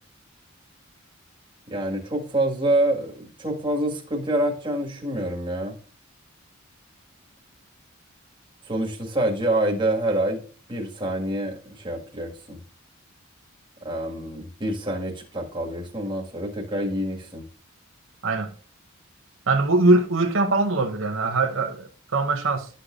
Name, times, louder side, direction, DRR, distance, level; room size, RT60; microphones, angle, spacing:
voice 1, 1.7-5.8 8.7-10.4 10.7-12.6 13.8-17.5, right 1 dB, 25° right, 1.8 m, -26 dB
voice 2, 19.5-22.7, right 2 dB, 70° right, 0.9 m, -22 dB
11.5 x 6.5 x 2.5 m
head